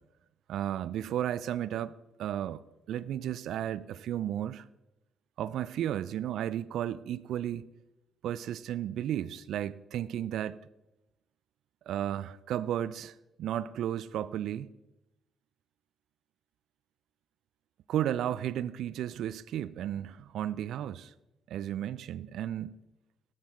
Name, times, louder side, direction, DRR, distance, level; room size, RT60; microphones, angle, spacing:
voice 1, 0.5-2.6 2.9-4.6 5.4-7.7 8.2-10.6 11.9-14.7 17.9-21.1 21.5-22.8, right 11 dB, 65° right, 0.5 m, -33 dB
17.5 x 13.0 x 3.8 m
hypercardioid pair, 45°, 0 cm